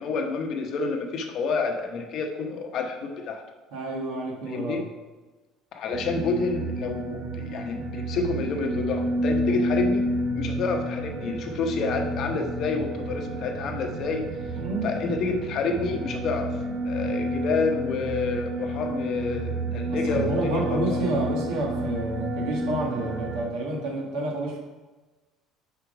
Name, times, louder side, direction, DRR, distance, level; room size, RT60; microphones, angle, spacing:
voice 1, 0.0-3.4 4.5-4.9 5.7-10.0 10.4-14.2 14.8-16.6 16.8-21.0, left 4 dB, 50° left, 3 dB, 0.9 m, -29 dB
voice 2, 3.7-4.8 9.5-9.6 14.5-14.9 19.9-24.6, right 2 dB, 75° right, -1 dB, 1.7 m, -29 dB
sound 1, 5.9-23.4, right 1 dB, 55° right, 1.0 m, -30 dB
5.7 x 4.7 x 5.0 m, 1.2 s
cardioid pair, 140°, 0 cm